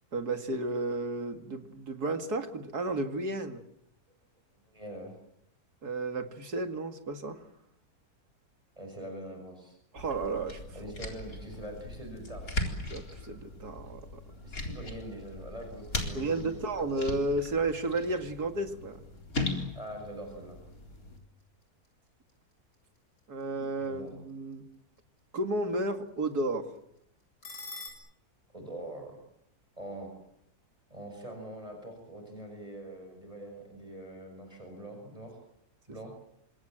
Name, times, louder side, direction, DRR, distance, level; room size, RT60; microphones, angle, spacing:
voice 1, 0.1-3.6 5.8-7.4 9.9-10.9 12.9-14.2 16.1-19.0 23.3-24.7 25.3-26.7, right 2 dB, 85° right, 6 dB, 2.8 m, -32 dB
voice 2, 4.7-5.1 8.8-9.8 10.7-12.5 14.4-16.6 19.7-20.6 23.8-24.1 28.5-29.2 29.8-30.1 30.9-35.4 35.9-36.1, right 1 dB, 20° right, 4 dB, 6.4 m, -43 dB
sound 1, 10.0-21.2, left 2 dB, 65° left, 4.6 m, -39 dB
sound 2, 20.2-27.9, left 3 dB, 85° left, 7.4 m, -54 dB
28.5 x 25.5 x 7.7 m, 0.77 s
omnidirectional pair, 1.6 m